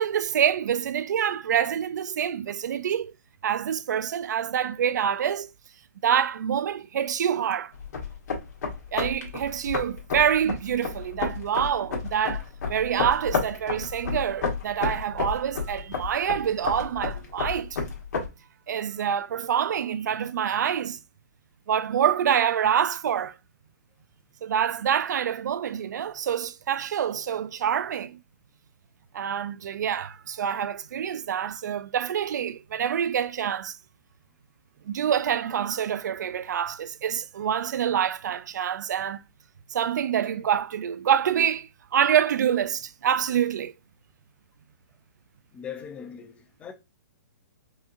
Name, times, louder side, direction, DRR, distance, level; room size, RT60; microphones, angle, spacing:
voice 1, 0.0-3.1 3.4-5.5 6.0-7.7 8.9-17.8 18.7-21.0 21.7-23.3 24.4-28.2 29.1-33.8 34.9-39.2 39.7-43.7, right 9 dB, 75° right, 0.4 m, -26 dB
sound 1, 7.7-18.3, left 5 dB, 70° left, 1.5 m, -31 dB
voice 2, 45.5-46.7, left 7 dB, 15° left, 0.4 m, -40 dB
4.8 x 2.8 x 2.5 m
hypercardioid pair, 150°, 10 cm